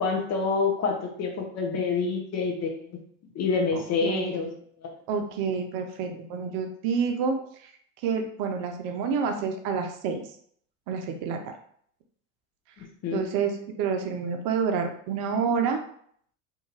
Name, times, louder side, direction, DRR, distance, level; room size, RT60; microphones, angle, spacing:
voice 1, 0.0-2.9 3.3-4.5 13.0-13.2, left 4 dB, 45° left, 1 dB, 0.8 m, -27 dB
voice 2, 3.7-4.3 5.1-7.4 8.0-10.2 10.9-11.5 13.1-15.8, right 6 dB, 60° right, 4 dB, 0.6 m, -28 dB
2.7 x 2.5 x 2.8 m, 0.62 s
hypercardioid pair, 70°, 37 cm